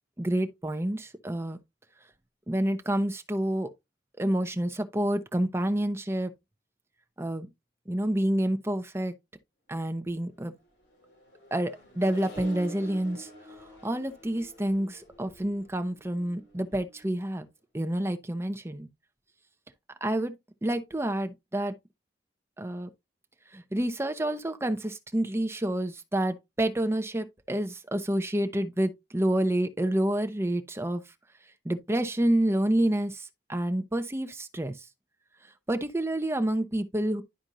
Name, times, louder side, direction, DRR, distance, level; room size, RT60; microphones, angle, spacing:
voice 1, 0.2-1.6 2.5-3.7 4.2-6.3 7.2-7.5 7.9-9.1 9.7-10.5 11.5-13.3 13.8-17.5 17.7-18.9 20.0-20.3 20.6-21.7 22.6-22.9 23.5-31.0 31.6-34.7 35.7-37.2, right 1 dB, 15° right, 0.8 m, -28 dB
Accelerating revving vroom, 10.6-17.3, right 2 dB, 75° left, 4.9 m, -48 dB
11.5 x 4.4 x 2.6 m
head